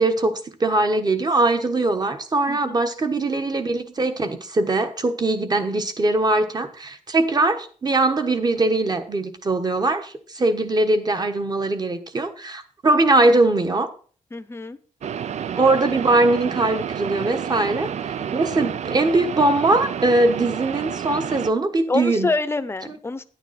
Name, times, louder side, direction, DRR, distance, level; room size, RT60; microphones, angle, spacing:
voice 1, 0.0-13.9 15.6-17.9 18.3-22.3, right 2 dB, 30° right, 8 dB, 1.2 m, -21 dB
voice 2, 2.5-2.8 14.3-14.8 21.9-23.2, left 3 dB, 20° left, 12 dB, 0.7 m, -26 dB
sound 1, 15.0-21.5, right 8 dB, 60° right, 0.4 m, -30 dB
10.5 x 9.2 x 4.2 m, 0.42 s
wide cardioid pair, 130°, 13 cm